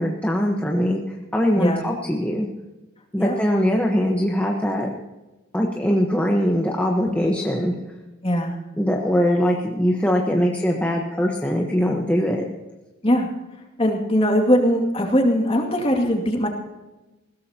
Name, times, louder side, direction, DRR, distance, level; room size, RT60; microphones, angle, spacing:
voice 1, 0.0-2.5 3.1-4.9 5.5-7.7 8.8-12.4, equal, 5° left, -1 dB, 1.2 m, -21 dB
voice 2, 8.2-8.6 13.0-13.3 13.8-16.5, equal, 30° left, 2 dB, 2.3 m, -20 dB
20.5 x 17.0 x 2.9 m, 1.1 s
head